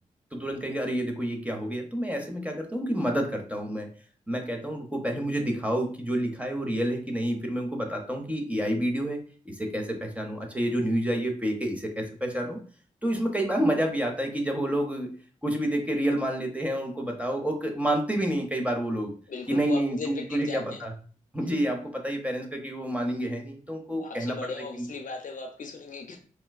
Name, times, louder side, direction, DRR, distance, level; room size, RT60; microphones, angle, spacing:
voice 1, 0.3-3.9 4.3-12.6 13.0-15.1 15.4-19.1 19.5-20.9 21.3-24.5 24.8-24.9, right 1 dB, 10° right, 2 dB, 0.8 m, -29 dB
voice 2, 19.3-20.8 23.9-26.2, left 4 dB, 60° left, 4 dB, 0.6 m, -37 dB
4.4 x 2.2 x 2.3 m, 0.42 s
cardioid pair, 50°, 15 cm